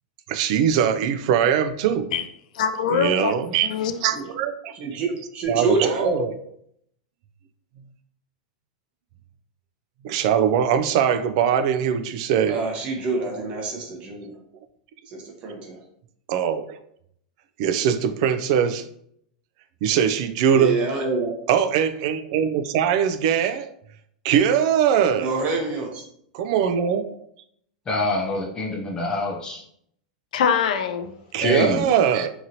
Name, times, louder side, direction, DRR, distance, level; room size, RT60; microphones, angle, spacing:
voice 1, 0.3-2.0 2.9-3.7 4.0-5.0 5.5-6.3 10.0-12.6 16.3-16.7 17.6-18.9 19.8-20.8 21.5-23.7 24.2-25.3 26.3-27.0 31.3-32.3, right 8 dB, 55° right, 0.3 m, -21 dB
voice 2, 2.5-3.3 3.7-4.0 30.3-31.1, left 7 dB, 75° left, 0.4 m, -23 dB
voice 3, 4.7-6.3 12.5-14.3 15.1-15.8 20.6-21.4 25.2-26.0, right 3 dB, 30° right, 0.7 m, -27 dB
voice 4, 27.9-29.6 31.4-31.8, left 2 dB, 20° left, 0.6 m, -25 dB
2.9 x 2.6 x 2.7 m
supercardioid pair, 145°, 4 cm